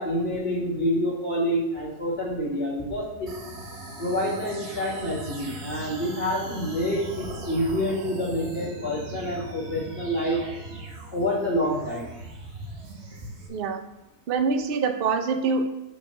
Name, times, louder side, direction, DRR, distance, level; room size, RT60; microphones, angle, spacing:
voice 1, 0.0-3.3 4.0-10.4 11.1-12.1, equal, 20° left, -3 dB, 1.4 m, -27 dB
sound 1, 3.3-13.5, right 2 dB, 50° right, 1.2 m, -39 dB
voice 2, 13.5-13.8 14.3-15.7, right 4 dB, 70° right, 5 dB, 0.5 m, -25 dB
6.9 x 3.2 x 5.4 m, 1.0 s
omnidirectional pair, 1.7 m